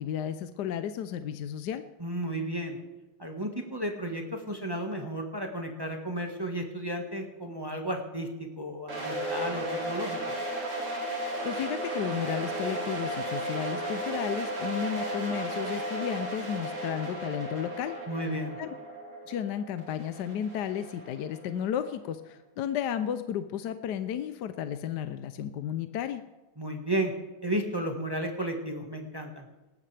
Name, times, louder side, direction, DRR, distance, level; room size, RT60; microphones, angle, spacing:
voice 1, 0.0-1.8 11.4-18.0 18.6-18.7 19.3-26.2, left 9 dB, 70° left, 10 dB, 1.1 m, -33 dB
voice 2, 2.0-2.8 3.2-10.2 18.1-18.6 26.6-27.1 27.4-29.5, right 1 dB, 15° right, 2 dB, 1.3 m, -33 dB
sound 1, 8.9-21.7, right 1 dB, 85° right, 4.6 m, -35 dB
sound 2, 11.3-15.4, right 7 dB, 55° right, 1.9 m, -46 dB
19.0 x 14.0 x 3.4 m, 1.1 s
omnidirectional pair, 2.3 m